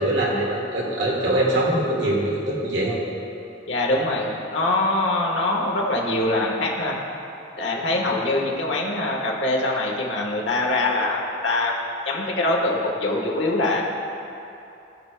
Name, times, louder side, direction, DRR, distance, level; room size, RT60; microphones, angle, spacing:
voice 1, 0.0-3.0, right 1 dB, 70° right, -4 dB, 1.8 m, -23 dB
voice 2, 3.7-7.0 7.6-11.7 12.0-13.8, left 2 dB, 70° left, -1 dB, 1.3 m, -23 dB
18.0 x 6.1 x 2.2 m, 2.8 s
head